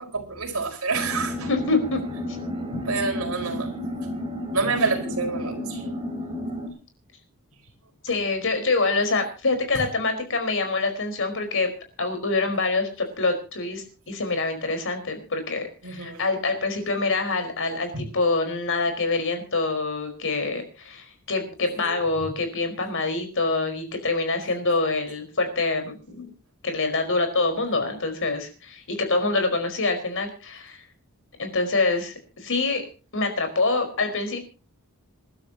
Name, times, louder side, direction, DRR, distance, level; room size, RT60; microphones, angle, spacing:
voice 1, 0.0-1.5 2.8-3.7 4.5-5.8 15.8-16.2 17.9-18.0 21.8-22.3, right 4 dB, 70° right, 2 dB, 4.9 m, -28 dB
sound 1, 0.9-6.7, left 1 dB, 25° right, 4.4 m, -32 dB
voice 2, 1.5-2.0 8.0-11.7 12.0-26.3 26.6-30.8 31.4-32.8 33.1-34.4, left 3 dB, 60° left, 6 dB, 4.8 m, -25 dB
28.0 x 12.0 x 2.9 m, 0.35 s
head